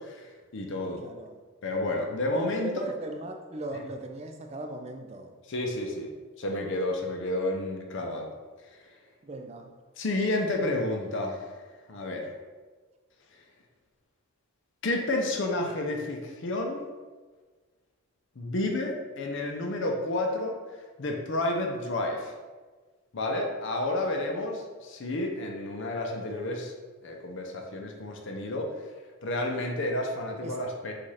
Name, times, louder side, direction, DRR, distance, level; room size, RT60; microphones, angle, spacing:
voice 1, 0.0-1.0 1.6-2.7 5.5-6.1 6.4-8.3 10.0-11.5 11.9-12.3 14.8-16.8 18.4-20.5 21.0-22.3 23.1-26.7 27.0-28.7 29.2-30.9, left 2 dB, 55° left, 2 dB, 0.5 m, -30 dB
voice 2, 0.9-1.4 2.3-5.3 9.2-9.7 30.4-30.6, right 2 dB, 30° right, 4 dB, 0.3 m, -38 dB
4.7 x 2.5 x 4.1 m, 1.4 s
head